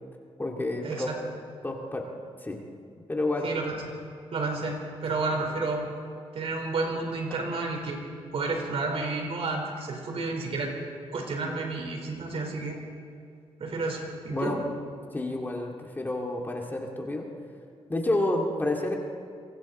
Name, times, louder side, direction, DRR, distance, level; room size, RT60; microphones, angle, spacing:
voice 1, 0.4-1.1 1.6-2.1 2.4-2.6 3.1-3.5 14.3-14.6 15.1-17.3 17.9-19.0, left 2 dB, 15° left, 0 dB, 2.3 m, -29 dB
voice 2, 3.4-3.8 4.3-4.8 5.0-5.8 6.3-8.0 8.3-10.7 11.1-12.8 13.6-14.6, right 3 dB, 60° right, 1 dB, 4.8 m, -31 dB
28.0 x 24.0 x 4.4 m, 2.4 s
wide cardioid pair, 130°, 11 cm